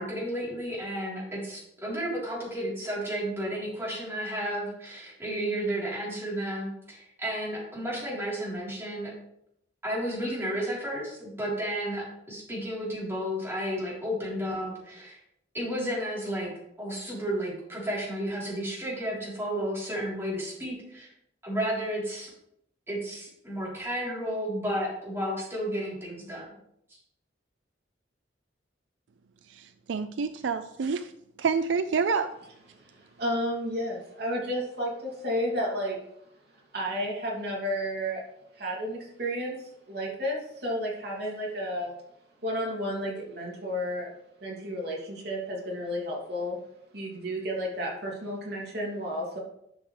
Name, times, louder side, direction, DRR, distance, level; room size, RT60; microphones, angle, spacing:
voice 1, 0.0-9.1 9.8-15.2 15.5-16.5 16.8-21.1 21.4-22.3 22.9-26.4, equal, 15° right, -7 dB, 3.8 m, -32 dB
voice 2, 29.5-31.1 31.4-32.3, right 5 dB, 75° right, 11 dB, 0.4 m, -28 dB
voice 3, 32.7-36.0 36.7-38.2 38.5-41.9 42.4-44.1 44.4-46.6 46.9-49.4, equal, 55° right, -3 dB, 2.8 m, -32 dB
12.0 x 6.4 x 3.4 m, 0.76 s
head